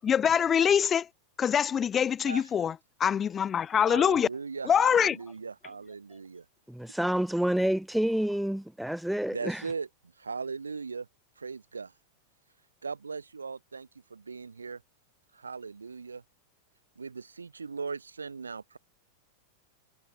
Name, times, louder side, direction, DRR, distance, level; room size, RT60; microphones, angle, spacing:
voice 1, 0.0-1.1 1.4-2.7 3.0-4.3 4.7-5.2, left 8 dB, 25° left, 0.9 m, -24 dB
voice 2, 3.8-6.4 9.3-9.9 10.2-11.1 11.4-11.9 12.8-14.8 15.3-16.2 17.0-18.8, right 5 dB, 75° right, 8.0 m, -38 dB
voice 3, 6.7-9.6, right 1 dB, ahead, 1.8 m, -28 dB
figure-of-eight pair, 90°, 0 cm